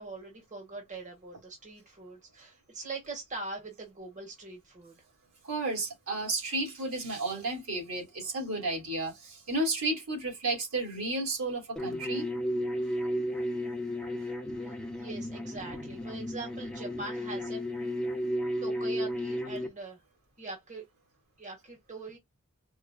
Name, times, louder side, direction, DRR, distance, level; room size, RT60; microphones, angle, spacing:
voice 1, 0.0-5.0 14.6-17.9 18.6-20.0 20.4-20.9 21.4-22.2, right 3 dB, 35° right, 1.2 m, -42 dB
voice 2, 5.5-12.3, right 2 dB, 70° right, 2.2 m, -32 dB
sound 1, 11.8-19.7, equal, 5° left, 0.6 m, -33 dB
4.8 x 2.2 x 2.2 m
head